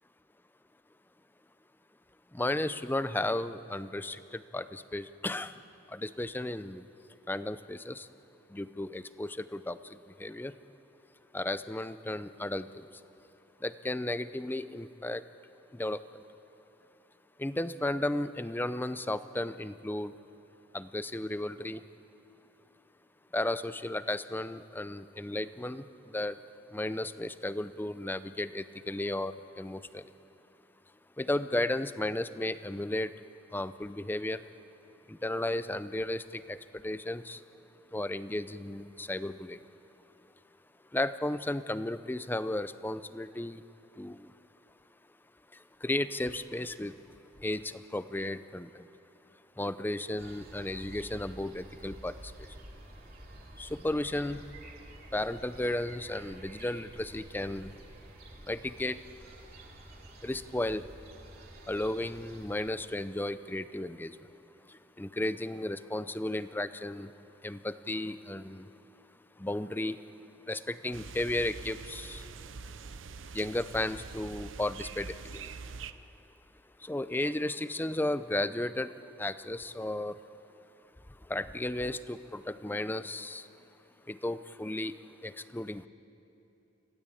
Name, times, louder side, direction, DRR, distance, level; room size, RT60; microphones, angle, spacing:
voice 1, 2.3-5.5 5.9-6.8 7.3-8.1 8.5-10.5 11.3-12.9 13.6-15.2 15.7-16.0 17.4-20.1 20.7-21.8 23.3-26.4 26.7-30.0 31.2-33.1 33.5-34.4 35.1-37.4 37.9-39.6 40.9-43.6 44.0-44.3 45.8-47.0 47.4-48.8 49.6-52.3 53.6-54.4 55.1-57.7 58.4-59.0 60.2-60.9 61.7-64.2 64.7-67.1 67.4-68.7 69.4-70.0 70.5-72.2 73.3-75.5 76.8-78.9 79.2-80.2 81.3-83.5 84.1-85.0 85.2-85.9, left 1 dB, 10° left, 13 dB, 0.5 m, -34 dB
sound 1, 50.2-62.7, right 1 dB, 50° right, 2.8 m, -50 dB
sound 2, 70.9-75.9, right 5 dB, 70° right, 0.7 m, -44 dB
26.0 x 16.0 x 8.6 m, 2.9 s
head